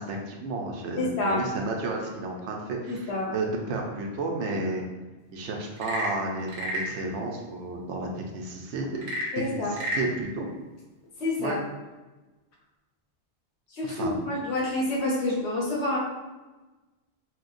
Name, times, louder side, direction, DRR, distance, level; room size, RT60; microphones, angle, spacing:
voice 1, 0.0-4.8 5.3-9.0 9.5-10.5 11.4-11.6 13.9-14.3, right 2 dB, 90° right, 1 dB, 0.9 m, -32 dB
voice 2, 1.0-1.4 2.9-3.3 9.3-9.7 11.2-11.6 13.7-16.0, left 2 dB, 75° left, -2 dB, 1.1 m, -28 dB
Frog / Percussion / Wood, 5.7-7.0 8.9-10.1, equal, 35° right, 0.6 m, -31 dB
4.3 x 2.2 x 2.5 m, 1.2 s
omnidirectional pair, 1.2 m